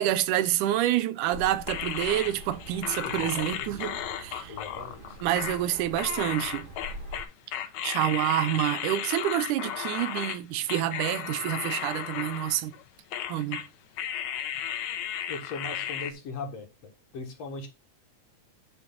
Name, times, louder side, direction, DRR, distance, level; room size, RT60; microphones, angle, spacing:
voice 1, 0.0-4.6 5.2-6.7 7.8-12.7 13.3-13.6, right 12 dB, 90° right, 2.2 m, -28 dB
sound 1, 1.3-7.2, right 1 dB, 35° right, 0.8 m, -44 dB
sound 2, 1.7-10.4 10.7-12.8 13.1-13.7 14.0-16.1, left 10 dB, 75° left, 2.2 m, -34 dB
voice 2, 3.0-3.9 4.5-5.2 15.3-17.7, left 3 dB, 60° left, 2.5 m, -40 dB
9.6 x 5.3 x 3.8 m
omnidirectional pair, 3.5 m